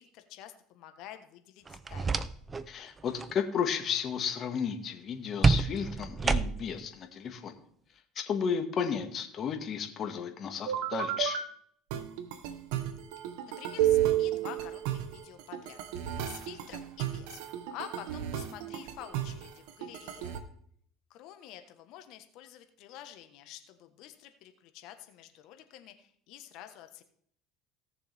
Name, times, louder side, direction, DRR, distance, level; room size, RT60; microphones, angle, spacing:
voice 1, 0.0-2.2 13.2-17.4 17.7-20.3 21.1-27.0, left 12 dB, 65° left, 8 dB, 1.4 m, -49 dB
sound 1, 1.7-2.7 3.0-3.3 5.4-6.8, right 4 dB, 25° right, 0.6 m, -28 dB
voice 2, 2.7-7.5 8.2-11.4, left 7 dB, 45° left, 5 dB, 1.9 m, -33 dB
sound 2, 10.7-11.4 11.9-20.4, right 11 dB, 80° right, 1.2 m, -32 dB
17.5 x 6.9 x 3.6 m, 0.62 s
supercardioid pair, 105°, 0 cm